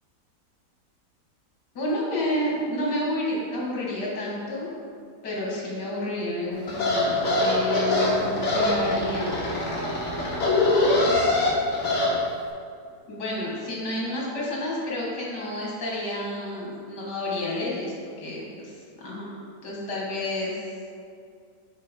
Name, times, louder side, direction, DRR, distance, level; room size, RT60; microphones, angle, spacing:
voice 1, 1.7-4.8 5.2-9.3 13.1-18.7 19.0-19.3 19.6-20.5, left 1 dB, 75° left, -4 dB, 2.3 m, -30 dB
sound 1, 6.7-12.1, left 2 dB, 45° left, 1.4 m, -23 dB
6.6 x 4.3 x 5.2 m, 2.3 s
omnidirectional pair, 1.8 m